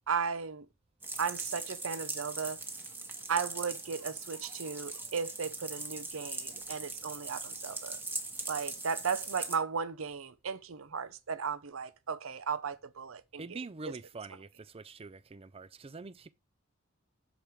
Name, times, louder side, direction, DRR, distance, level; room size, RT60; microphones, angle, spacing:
voice 1, 0.1-0.7 1.2-2.6 3.3-8.0 8.5-13.6 13.9-14.0, right 6 dB, 80° right, 0.7 m, -35 dB
sound 1, 1.0-9.6, right 3 dB, 10° right, 1.2 m, -40 dB
voice 2, 13.4-16.3, right 3 dB, 30° right, 0.4 m, -45 dB
7.2 x 5.1 x 4.7 m
head